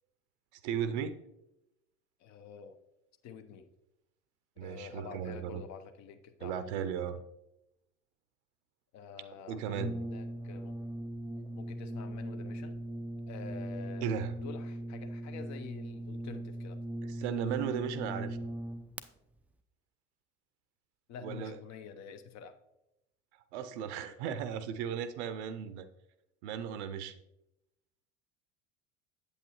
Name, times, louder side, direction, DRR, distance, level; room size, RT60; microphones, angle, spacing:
voice 1, 0.6-1.2 4.6-5.6 6.4-7.2 9.5-9.9 14.0-14.3 17.0-18.4 21.2-21.6 23.5-25.9 26.4-27.1, right 8 dB, 65° right, 12 dB, 0.6 m, -36 dB
voice 2, 2.2-2.8 3.2-3.7 4.6-6.7 8.9-10.8 11.5-12.8 13.3-16.8 21.1-22.6, left 7 dB, 50° left, 9 dB, 0.9 m, -48 dB
Brass instrument, 9.7-19.1, right 1 dB, 5° right, 0.4 m, -39 dB
8.3 x 8.1 x 3.0 m, 0.88 s
figure-of-eight pair, 65°, 36 cm